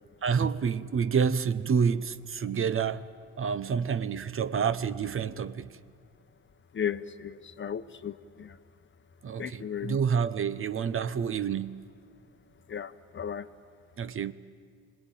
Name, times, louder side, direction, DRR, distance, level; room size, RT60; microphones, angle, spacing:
voice 1, 0.2-3.1 3.4-5.8 9.2-11.8 14.0-14.3, right 6 dB, 45° right, 0.9 m, -28 dB
voice 2, 6.7-8.6 9.4-10.0 12.7-13.5, left 8 dB, 40° left, 0.9 m, -35 dB
26.5 x 19.5 x 9.2 m
cardioid pair, 90°, 30 cm